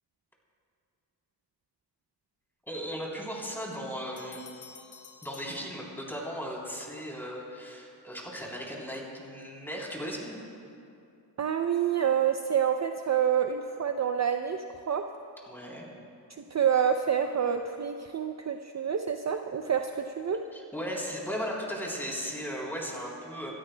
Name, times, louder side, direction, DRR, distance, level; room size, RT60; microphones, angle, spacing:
voice 1, 2.7-4.4 5.2-10.4 15.5-15.9 20.5-23.5, equal, 5° left, -3 dB, 3.5 m, -36 dB
sound 1, 4.2-6.4, left 6 dB, 45° left, 0.9 m, -51 dB
voice 2, 11.4-15.1 16.4-20.4, right 8 dB, 40° right, 6 dB, 0.5 m, -28 dB
28.0 x 13.0 x 2.2 m, 2.5 s
cardioid pair, 70°, 42 cm